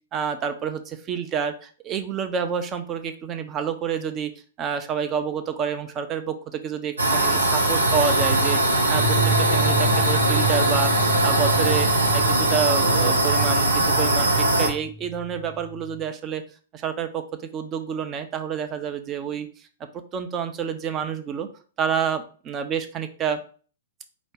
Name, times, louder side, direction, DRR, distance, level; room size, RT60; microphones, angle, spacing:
voice 1, 0.1-4.3 4.6-16.4 16.7-19.5 20.1-21.5 21.8-23.4, right 7 dB, 25° right, 8 dB, 0.6 m, -28 dB
sound 1, 7.0-14.7, right 2 dB, 80° right, 0.7 m, -20 dB
sound 2, 9.0-16.0, equal, 10° right, 0.9 m, -31 dB
5.0 x 2.2 x 4.9 m, 0.41 s
figure-of-eight pair, 110°, 0 cm